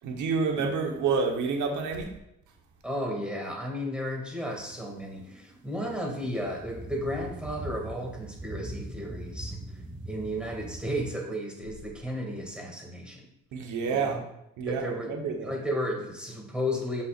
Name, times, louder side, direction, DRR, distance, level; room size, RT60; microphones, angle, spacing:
voice 1, 0.0-2.1 13.5-14.2 14.6-15.5, right 5 dB, 80° right, 2 dB, 1.2 m, -28 dB
voice 2, 2.8-9.6 10.1-13.3 13.9-14.2 14.7-17.0, equal, 5° right, -1 dB, 2.3 m, -33 dB
sound 1, 4.5-11.1, right 1 dB, 25° right, 1.7 m, -42 dB
8.2 x 5.7 x 2.5 m, 0.83 s
cardioid pair, 90°, 30 cm